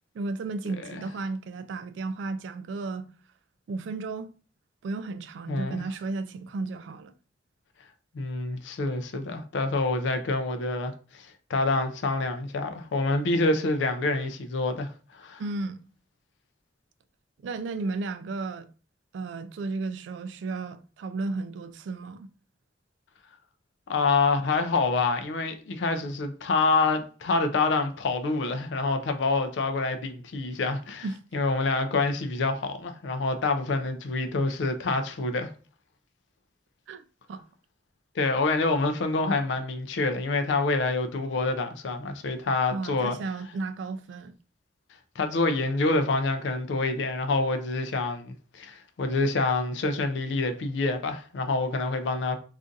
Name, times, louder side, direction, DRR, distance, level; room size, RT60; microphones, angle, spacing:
voice 1, 0.1-3.1 3.7-4.3 4.8-7.1 15.4-15.8 17.4-18.7 19.1-22.3 31.0-31.2 36.9-37.0 37.3-37.4 42.7-44.3, right 3 dB, 80° right, 0.3 m, -33 dB
voice 2, 5.5-5.8 8.1-15.4 23.9-31.1 31.3-35.5 38.2-43.2 45.2-52.4, left 3 dB, 75° left, 0.4 m, -27 dB
2.5 x 2.4 x 3.8 m
head